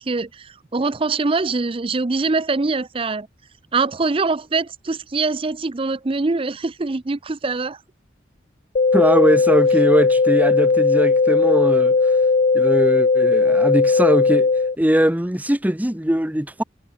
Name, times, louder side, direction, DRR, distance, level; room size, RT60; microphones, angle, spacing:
voice 1, 0.0-3.3 3.7-7.8, right 3 dB, 30° right, 0.5 m, -23 dB
sound 1, 8.8-14.8, left 4 dB, 45° left, 0.5 m, -17 dB
voice 2, 8.9-12.0 12.5-14.5 14.8-16.6, equal, 10° right, 1.0 m, -20 dB
head